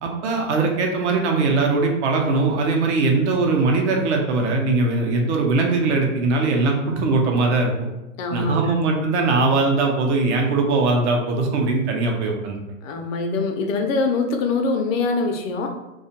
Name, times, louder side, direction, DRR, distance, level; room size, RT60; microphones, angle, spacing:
voice 1, 0.0-7.7 8.3-12.6, right 3 dB, 55° right, 1 dB, 0.7 m, -20 dB
voice 2, 8.2-8.8 12.8-15.7, left 3 dB, 70° left, 4 dB, 0.6 m, -23 dB
2.3 x 2.1 x 2.7 m, 1.0 s
supercardioid pair, 145°, 41 cm